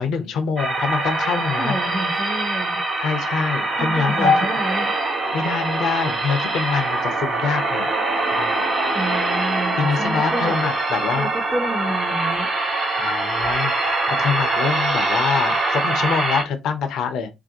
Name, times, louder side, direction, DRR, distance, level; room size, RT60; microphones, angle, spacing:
voice 1, 0.0-1.8 3.0-4.4 5.3-7.9 8.4-8.6 9.8-11.3 13.0-17.3, left 6 dB, 60° left, 0.5 m, -25 dB
sound 1, 0.6-16.4, right 2 dB, 40° right, 1.2 m, -23 dB
voice 2, 1.6-2.8 3.8-4.9 8.9-10.6 11.2-12.5, equal, 15° right, 0.5 m, -29 dB
sound 2, 4.2-5.4 6.3-7.5 8.2-8.7 9.1-9.7 10.4-11.3, left 3 dB, 75° right, 0.9 m, -29 dB
2.5 x 2.2 x 2.6 m
figure-of-eight pair, 45°, 0 cm